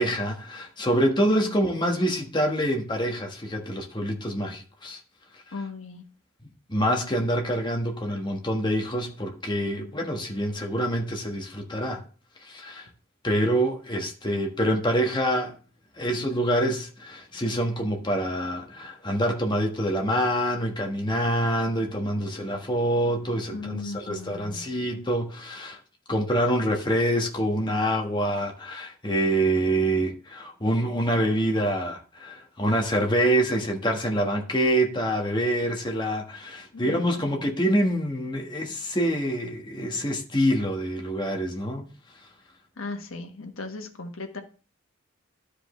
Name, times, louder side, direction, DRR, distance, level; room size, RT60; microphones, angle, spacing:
voice 1, 0.0-5.0 5.3-5.4 6.7-12.0 12.4-12.9 13.2-15.5 16.0-25.8 26.1-41.9, equal, 20° left, 1.3 m, -26 dB
voice 2, 1.4-1.7 5.5-6.0 9.8-9.9 23.5-24.7 36.7-37.4 42.8-44.4, left 3 dB, 85° left, 1.3 m, -37 dB
12.5 x 5.0 x 3.2 m
head